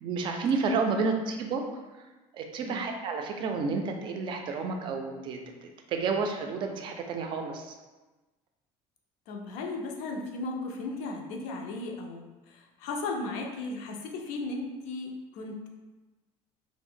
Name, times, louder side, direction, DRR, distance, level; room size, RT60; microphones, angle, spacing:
voice 1, 0.0-1.6 2.3-7.7, right 4 dB, 40° right, 4 dB, 0.4 m, -30 dB
voice 2, 9.3-15.7, left 3 dB, 85° left, 2 dB, 0.5 m, -36 dB
2.6 x 2.0 x 3.6 m, 1.2 s
cardioid pair, 150°, 13 cm